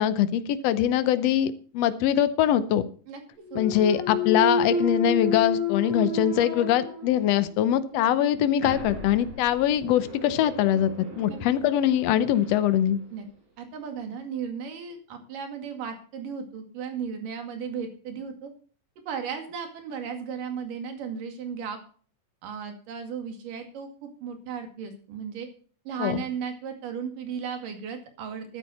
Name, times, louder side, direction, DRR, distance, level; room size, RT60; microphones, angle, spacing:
voice 1, 0.0-2.9 3.5-10.9 11.2-13.0 26.0-26.2, left 11 dB, 75° left, 12 dB, 1.5 m, -23 dB
Thump thud, 3.5-7.5 8.0-12.6, left 2 dB, 45° right, 5.6 m, -31 dB
voice 2, 3.5-3.8 11.3-11.4 13.1-13.3 13.6-18.5 19.0-21.8 22.4-25.5 25.9-28.6, right 6 dB, 70° right, 5 dB, 3.8 m, -35 dB
13.5 x 10.0 x 4.3 m, 0.42 s
omnidirectional pair, 3.9 m